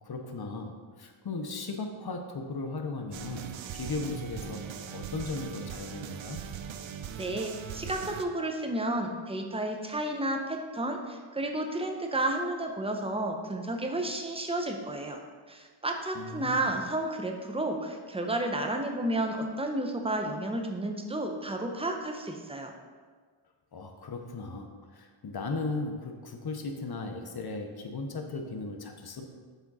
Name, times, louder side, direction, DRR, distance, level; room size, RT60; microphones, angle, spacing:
voice 1, 0.0-6.4 16.1-16.7 23.7-29.2, left 3 dB, 50° left, 4 dB, 0.8 m, -37 dB
sound 1, 3.1-8.3, right 8 dB, 65° right, 0.5 m, -40 dB
voice 2, 7.2-15.2 15.5-22.7, right 1 dB, 10° right, 3 dB, 0.7 m, -32 dB
7.2 x 3.6 x 4.1 m, 1.6 s
cardioid pair, 60°, 50 cm